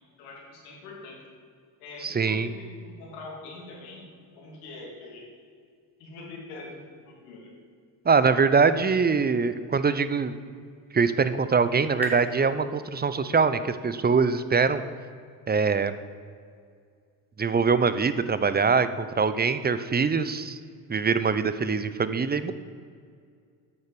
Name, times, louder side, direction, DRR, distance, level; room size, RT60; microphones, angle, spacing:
voice 1, 0.2-1.2 1.8-4.1 4.4-5.3 6.0-7.5, left 3 dB, 80° left, -2 dB, 2.7 m, -43 dB
voice 2, 2.0-2.5 8.1-10.3 10.9-14.8 15.5-15.9 17.4-20.6 20.9-22.5, right 5 dB, 20° right, 13 dB, 0.6 m, -23 dB
sound 1, 10.6-13.9, right 1 dB, 5° right, 1.6 m, -41 dB
9.0 x 6.5 x 6.9 m, 2.2 s
hypercardioid pair, 60°, 50 cm